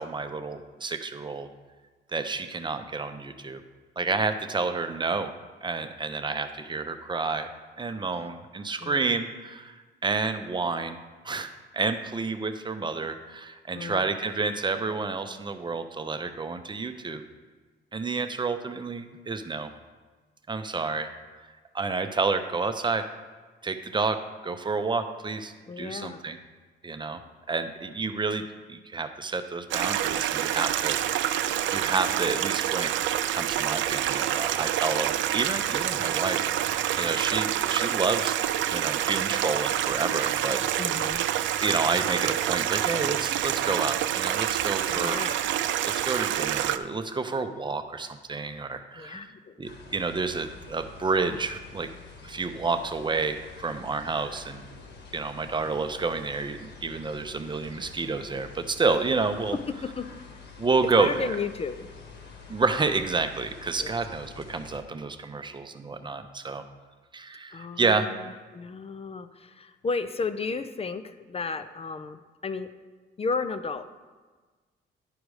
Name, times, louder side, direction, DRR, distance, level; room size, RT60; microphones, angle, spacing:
voice 1, 0.0-1.5 2.1-3.6 4.0-5.3 5.6-7.5 7.8-9.8 10.0-11.0 11.2-11.5 11.7-17.2 17.9-19.7 20.5-21.1 21.7-23.0 23.6-26.4 26.8-27.2 27.5-32.9 33.3-38.4 38.7-40.8 41.6-45.2 45.9-49.3 49.6-51.9 52.2-54.6 55.1-59.6 60.6-61.3 62.5-66.6 67.1-68.1, right 4 dB, 25° right, 8 dB, 0.7 m, -29 dB
voice 2, 8.8-9.2 13.7-14.1 25.7-26.2 36.0-36.3 40.8-41.2 44.9-45.4 49.0-49.5 59.5-60.1 60.9-61.9 63.8-64.0 67.5-72.7 73.2-73.9, left 4 dB, 30° left, 11 dB, 0.5 m, -33 dB
Stream, 29.7-46.8, right 11 dB, 75° right, 0.4 m, -27 dB
sound 1, 49.6-64.8, left 4 dB, 60° left, 1.5 m, -47 dB
10.5 x 5.0 x 4.8 m, 1.4 s
cardioid pair, 90°, 20 cm